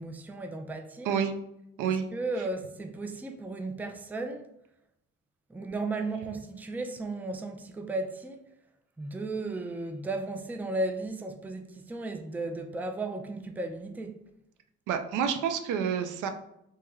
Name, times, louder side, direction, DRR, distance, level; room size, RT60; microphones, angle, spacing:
voice 1, 0.0-1.1 1.8-4.5 5.5-8.4 9.0-14.2, right 2 dB, 5° right, 0.3 m, -35 dB
voice 2, 14.9-16.3, right 7 dB, 85° right, 0.5 m, -28 dB
3.0 x 2.9 x 3.5 m
cardioid pair, 90°, 30 cm